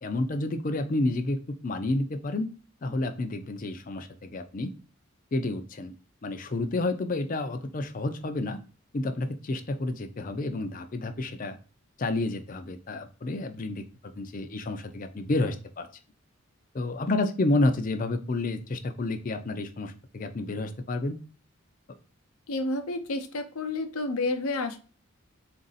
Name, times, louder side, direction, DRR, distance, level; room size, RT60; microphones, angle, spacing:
voice 1, 0.0-1.4 1.6-2.5 2.8-4.7 5.3-5.9 6.2-8.6 8.9-11.6 12.0-13.8 14.2-15.9 16.7-21.2, left 2 dB, 40° left, 8 dB, 0.4 m, -30 dB
voice 2, 22.5-24.8, left 2 dB, 80° left, 8 dB, 0.6 m, -30 dB
4.0 x 2.6 x 3.9 m, 0.37 s
head